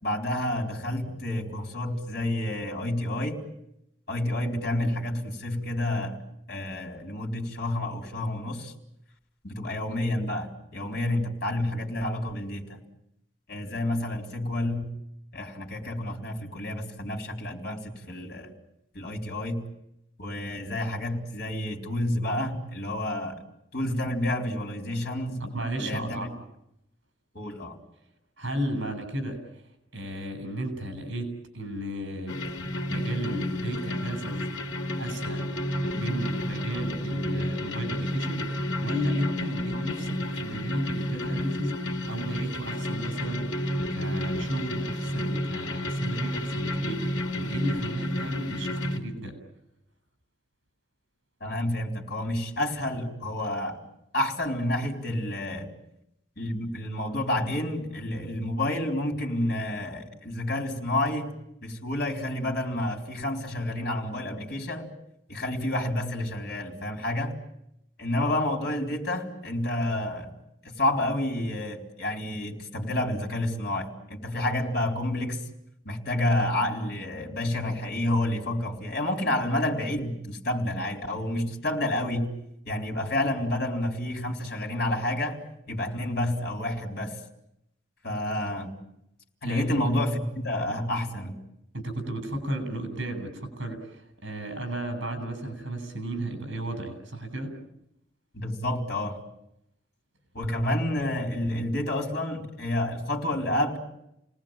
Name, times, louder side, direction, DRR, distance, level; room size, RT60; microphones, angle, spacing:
voice 1, 0.0-3.4 4.1-6.2 6.5-8.7 9.4-12.8 13.5-14.9 15.3-18.5 18.9-19.6 20.2-23.4 23.7-25.4 25.8-26.3 27.3-27.8 51.4-53.8 54.1-55.7 56.4-61.3 61.6-64.9 65.3-67.3 68.0-70.3 70.6-75.4 75.8-82.3 82.7-85.4 85.7-87.2 88.0-88.8 89.4-91.4 98.3-99.2 100.3-103.8, left 1 dB, 50° left, 1 dB, 4.3 m, -29 dB
voice 2, 25.4-26.3 28.4-32.4 32.9-34.5 35.0-35.5 35.9-49.4 89.4-89.9 91.7-97.5, right 1 dB, 65° right, 9 dB, 7.3 m, -34 dB
sound 1, 32.3-49.0, left 1 dB, 80° left, 2.5 m, -31 dB
29.5 x 19.5 x 9.1 m, 0.81 s
head